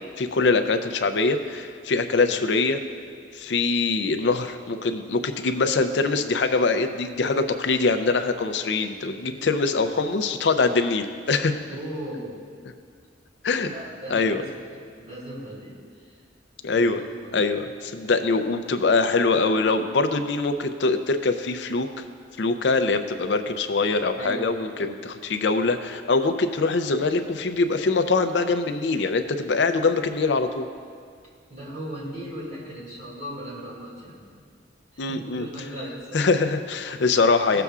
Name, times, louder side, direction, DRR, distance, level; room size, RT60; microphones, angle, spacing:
voice 1, 0.2-2.8 3.3-11.5 13.4-13.7 14.1-14.4 16.6-17.0 17.3-21.9 22.4-30.7 35.0-35.5 36.1-37.6, left 3 dB, 70° left, 7 dB, 0.5 m, -23 dB
voice 2, 9.1-9.9 11.7-12.4 13.7-16.2 16.7-16.8 17.1-17.4 24.1-24.5 31.5-34.4 34.9-36.3, right 1 dB, 40° right, -6 dB, 2.5 m, -38 dB
16.5 x 6.8 x 2.4 m, 2.1 s
head